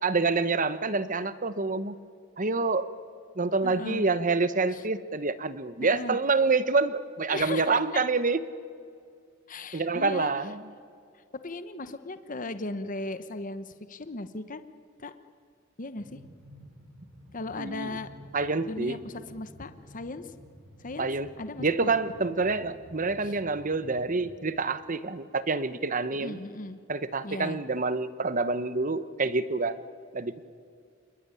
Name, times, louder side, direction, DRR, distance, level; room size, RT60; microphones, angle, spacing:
voice 1, 0.0-1.9 2.4-2.9 3.4-8.4 9.7-10.6 17.6-17.9 18.3-19.0 21.0-21.3 21.6-26.4 26.9-29.8 30.1-30.4, right 3 dB, 40° right, 14 dB, 1.1 m, -27 dB
voice 2, 3.6-4.1 4.7-4.8 5.8-6.2 7.3-8.0 9.5-10.5 11.4-14.6 15.0-15.1 15.8-16.2 17.3-18.1 18.6-20.3 20.8-21.1 21.4-21.9 23.2-23.4 26.1-26.8 27.2-27.6, left 2 dB, 40° left, 11 dB, 1.1 m, -37 dB
Train, 16.0-24.8, equal, 60° right, 7.2 m, -51 dB
27.5 x 21.0 x 9.8 m, 2.3 s
head